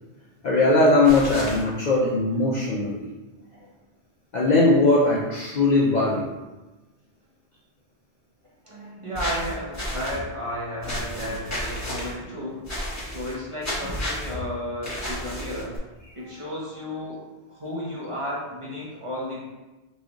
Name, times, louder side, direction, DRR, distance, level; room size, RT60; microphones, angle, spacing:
voice 1, 0.4-3.0 4.3-6.2, left 2 dB, 55° left, -5 dB, 0.5 m, -20 dB
sound 1, 1.0-1.6 9.1-10.2 10.8-12.1 12.7-13.3 13.6-14.3 14.8-15.8, equal, 15° left, 0.9 m, -32 dB
voice 2, 8.6-12.7 13.0-15.8 16.1-19.4, equal, 35° right, -6 dB, 0.7 m, -33 dB
3.1 x 2.4 x 3.8 m, 1.1 s
omnidirectional pair, 1.1 m